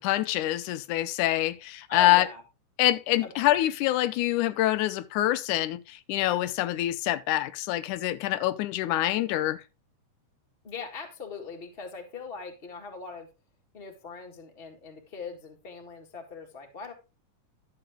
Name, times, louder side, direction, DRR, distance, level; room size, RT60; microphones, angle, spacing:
voice 1, 0.0-2.3 2.8-9.6, left 15 dB, 80° left, 2.2 m, -26 dB
voice 2, 1.9-2.4 3.2-3.3 10.6-13.3 13.7-16.9, left 4 dB, 25° left, 1.5 m, -40 dB
12.0 x 6.9 x 3.7 m
omnidirectional pair, 3.5 m